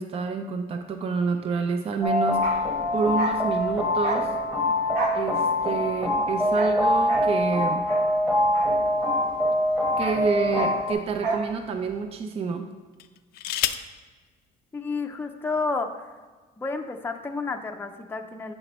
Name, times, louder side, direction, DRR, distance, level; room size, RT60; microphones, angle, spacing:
voice 1, 0.0-2.6 2.9-4.3 5.1-7.8 10.0-12.8, right 5 dB, 35° right, 7 dB, 0.5 m, -28 dB
sound 1, 2.0-10.9, left 1 dB, 10° right, 1.3 m, -24 dB
Bark, 2.3-9.3 9.6-11.5 11.8-11.9, right 3 dB, 65° right, 1.3 m, -33 dB
sound 2, 9.2-10.4 11.2-11.3 12.9-14.0 15.1-15.2 15.5-15.9, left 12 dB, 65° left, 0.5 m, -32 dB
voice 2, 14.7-16.1 16.6-18.5, left 3 dB, 10° left, 4 dB, 0.5 m, -30 dB
10.5 x 5.1 x 3.1 m, 1.4 s
cardioid pair, 110°, 17 cm